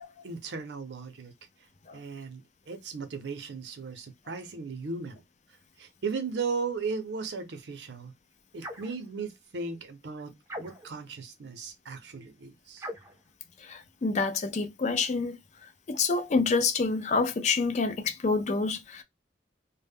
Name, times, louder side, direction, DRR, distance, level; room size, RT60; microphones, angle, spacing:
voice 1, 0.2-1.3 1.9-5.2 5.8-8.1 8.5-10.3 10.6-12.9, right 4 dB, 75° right, 0.6 m, -36 dB
sound 1, 8.6-9.0 10.5-11.0 12.8-13.2, equal, 15° right, 0.5 m, -40 dB
voice 2, 13.7-15.4 15.9-19.0, left 4 dB, 40° left, 0.4 m, -27 dB
2.1 x 2.1 x 3.4 m
head